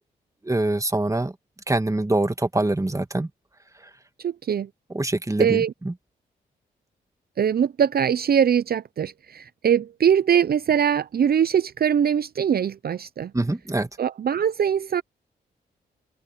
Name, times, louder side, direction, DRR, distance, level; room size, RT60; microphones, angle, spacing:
voice 1, 0.4-1.3 1.7-3.3 4.9-5.9 13.3-13.9, right 2 dB, 15° right, 2.2 m, -24 dB
voice 2, 4.2-4.7 5.4-5.7 7.4-13.3 14.0-15.0, right 8 dB, 55° right, 0.7 m, -22 dB
open air
supercardioid pair, 45°, 19 cm